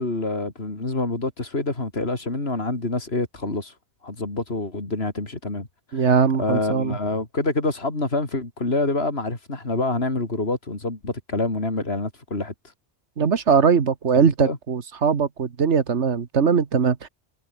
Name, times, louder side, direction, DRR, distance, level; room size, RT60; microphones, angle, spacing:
voice 1, 0.0-3.7 4.0-6.1 6.4-12.5 14.4-14.6, left 2 dB, 65° left, 4.1 m, -27 dB
voice 2, 5.9-7.0 13.2-17.1, right 6 dB, 90° right, 1.7 m, -20 dB
omnidirectional pair, 1.1 m